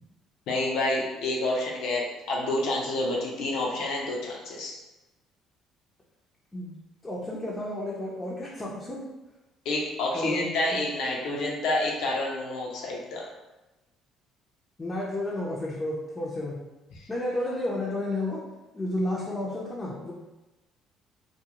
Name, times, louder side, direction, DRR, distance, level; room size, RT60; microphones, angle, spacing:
voice 1, 0.5-4.7 9.6-13.3, left 2 dB, 75° left, -2 dB, 0.6 m, -28 dB
voice 2, 7.0-9.1 10.1-10.5 14.8-16.6 17.1-18.4 18.7-20.1, left 1 dB, 25° left, -6 dB, 0.6 m, -31 dB
2.4 x 2.3 x 2.9 m, 1.1 s
supercardioid pair, 65°, 0 cm